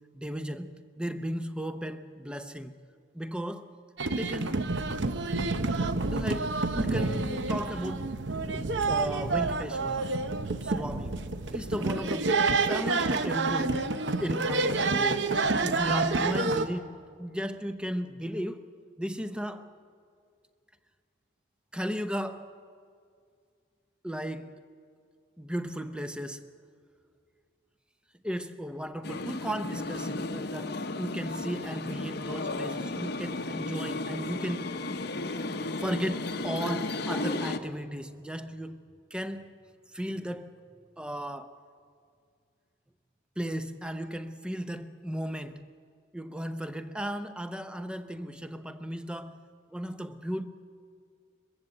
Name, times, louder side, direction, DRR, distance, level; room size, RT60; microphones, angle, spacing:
voice 1, 0.1-2.7 3.1-3.7 4.2-4.7 6.1-8.1 8.5-10.2 10.6-11.2 11.5-12.3 12.6-13.9 14.2-15.3 15.6-18.7 19.0-19.7 21.7-22.5 24.0-24.6 25.4-26.5 28.2-34.8 35.8-38.8 39.1-39.6 39.9-40.6 41.0-41.6 43.4-45.6 46.1-49.4 49.7-50.5, equal, 5° right, 0.6 m, -35 dB
sound 1, 4.0-16.7, right 3 dB, 65° right, 0.8 m, -28 dB
sound 2, 29.0-37.6, left 2 dB, 55° left, 0.9 m, -34 dB
22.0 x 15.0 x 7.8 m
head